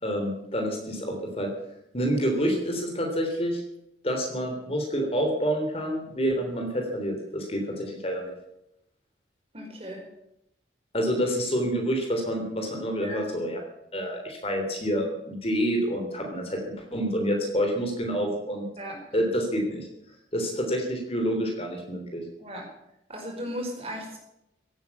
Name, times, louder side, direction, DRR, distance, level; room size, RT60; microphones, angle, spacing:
voice 1, 0.0-1.5 1.9-3.6 4.0-8.3 10.9-13.6 13.9-16.6 16.9-18.6 19.1-19.9 20.3-22.2, equal, 30° left, 2 dB, 3.4 m, -28 dB
voice 2, 9.5-10.0 13.0-13.2 18.8-19.0 22.4-22.6 23.1-24.2, equal, 35° right, 0 dB, 4.9 m, -36 dB
16.0 x 9.4 x 8.3 m, 0.82 s
head